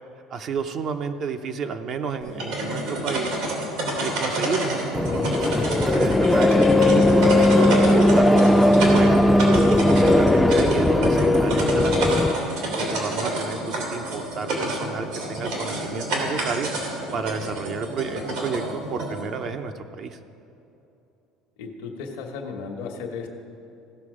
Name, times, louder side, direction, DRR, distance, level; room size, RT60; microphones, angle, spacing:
voice 1, 0.3-3.4 4.0-9.2 9.7-12.3 12.7-16.7 17.1-18.6 18.9-20.2, right 6 dB, 50° right, 7 dB, 0.6 m, -31 dB
sound 1, 2.2-19.2, right 1 dB, 85° right, 2.8 m, -29 dB
sound 2, 4.9-12.3, left 1 dB, 5° left, 0.4 m, -18 dB
voice 2, 21.6-23.3, left 5 dB, 85° left, 2 dB, 1.1 m, -34 dB
16.0 x 6.2 x 4.9 m, 2.8 s
supercardioid pair, 115°, 0 cm